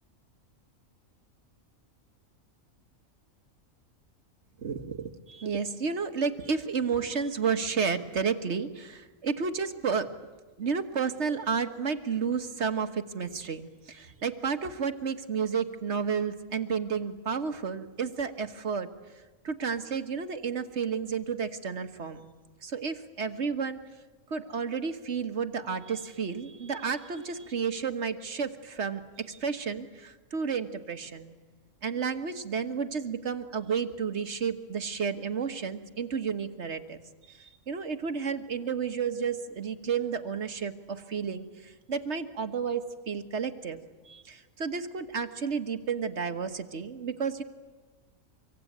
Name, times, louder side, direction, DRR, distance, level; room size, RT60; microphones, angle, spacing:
voice 1, 4.6-10.1 10.6-18.9 19.4-22.3 22.6-23.8 24.3-31.3 31.8-37.0 37.3-47.4, right 6 dB, 60° right, 7 dB, 1.7 m, -31 dB
25.0 x 23.5 x 9.3 m, 1.3 s
omnidirectional pair, 1.4 m